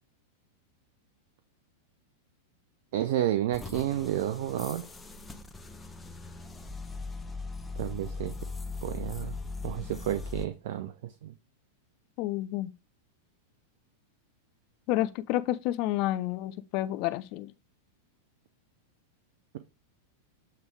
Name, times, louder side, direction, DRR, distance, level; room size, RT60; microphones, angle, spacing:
voice 1, 2.9-4.8 7.8-8.3 8.8-9.4 9.6-11.3, right 12 dB, 65° right, 0.7 m, -31 dB
sound 1, 3.5-10.5, left 3 dB, 15° left, 1.0 m, -40 dB
voice 2, 12.2-12.7 14.9-17.5, left 15 dB, 50° left, 0.6 m, -30 dB
8.0 x 3.5 x 4.8 m
hypercardioid pair, 100°, 0 cm